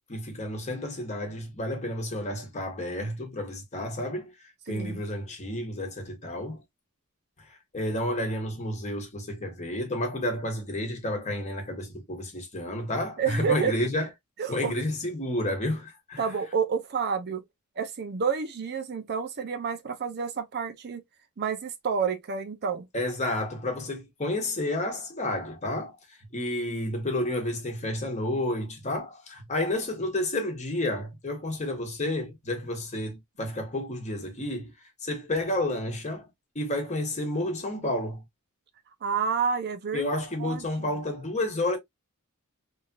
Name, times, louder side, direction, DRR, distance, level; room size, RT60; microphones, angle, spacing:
voice 1, 0.1-4.3 4.7-6.6 7.7-14.1 14.5-16.2 22.9-25.9 26.3-34.7 35.0-36.3 36.5-38.2 39.9-41.8, left 1 dB, 30° left, 1.0 m, -30 dB
voice 2, 4.7-5.0 13.2-13.8 14.4-14.8 16.2-17.4 17.8-21.0 21.4-22.9 39.0-40.9, right 6 dB, 50° right, 0.5 m, -29 dB
3.0 x 2.7 x 2.3 m
head